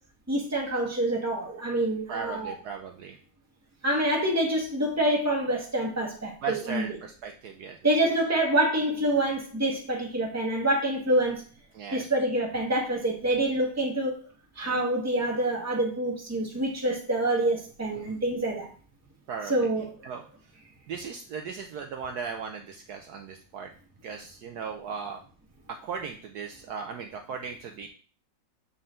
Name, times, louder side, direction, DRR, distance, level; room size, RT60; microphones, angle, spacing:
voice 1, 0.3-2.5 3.8-6.9 7.8-11.4 11.9-14.1 14.6-18.7 19.4-19.8, right 1 dB, 10° right, -1 dB, 1.3 m, -26 dB
voice 2, 2.1-3.2 6.4-7.8 11.7-12.1 17.9-18.1 19.3-19.5 20.0-20.2 20.9-23.7 24.0-25.2 25.7-27.9, right 6 dB, 70° right, 3 dB, 1.1 m, -37 dB
7.7 x 4.4 x 3.7 m, 0.40 s
omnidirectional pair, 2.0 m